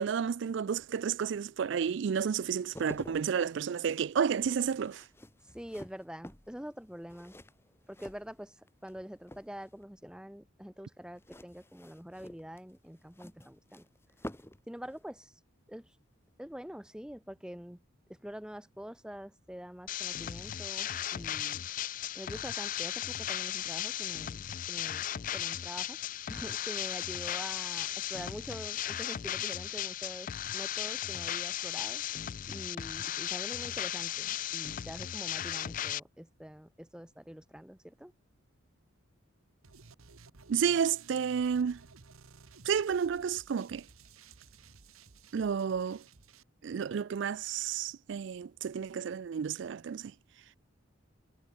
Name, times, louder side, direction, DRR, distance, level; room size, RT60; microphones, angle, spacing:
voice 1, 0.0-5.0 40.5-41.8 42.7-43.8 45.3-46.0 46.6-50.1, right 7 dB, 60° right, 0.3 m, -31 dB
sound 1, 2.5-8.9 9.2-9.8 11.2-14.7 14.9-15.1, left 1 dB, 10° left, 1.4 m, -49 dB
voice 2, 5.4-7.3 7.9-13.9 14.7-15.4 15.7-15.9 16.4-17.8 18.1-21.6 22.1-24.4 24.7-25.0 25.3-26.0 26.3-32.0 32.5-38.1, equal, 5° right, 0.8 m, -45 dB
sound 2, 19.9-36.0, left 11 dB, 40° left, 0.3 m, -36 dB
sound 3, 39.6-46.4, right 4 dB, 85° right, 1.3 m, -56 dB
head